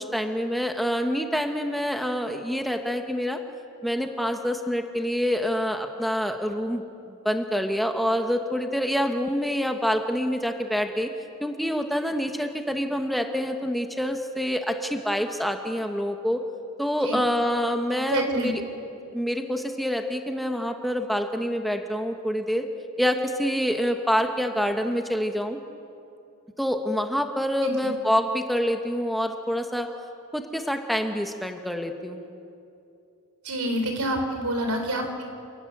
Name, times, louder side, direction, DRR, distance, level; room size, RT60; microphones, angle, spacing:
voice 1, 0.0-3.4 3.8-6.8 7.2-11.1 11.4-16.4 16.8-18.5 19.1-22.6 23.0-25.6 26.6-29.9 30.3-32.3, equal, ahead, 4 dB, 1.2 m, -26 dB
voice 2, 17.9-18.5 27.6-27.9 33.4-35.2, right 1 dB, 80° right, 4 dB, 4.0 m, -28 dB
28.0 x 18.5 x 7.4 m, 2.7 s
head